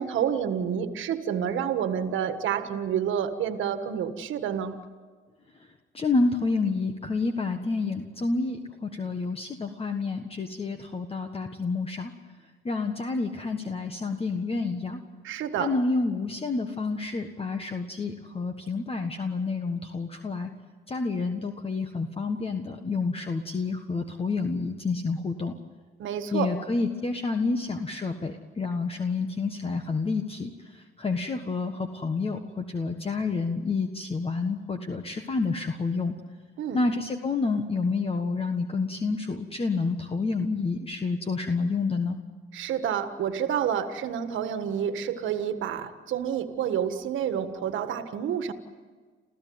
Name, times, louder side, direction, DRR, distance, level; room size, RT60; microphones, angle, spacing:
voice 1, 0.0-4.8 15.2-15.7 26.0-26.5 36.6-36.8 42.5-48.5, right 8 dB, 80° right, 10 dB, 1.6 m, -29 dB
voice 2, 5.9-12.1 12.6-15.0 15.6-20.5 20.9-25.5 26.3-36.1 36.7-42.2, left 3 dB, 30° left, 6 dB, 1.5 m, -29 dB
28.5 x 15.0 x 9.6 m, 1.5 s
cardioid pair, 90°, 20 cm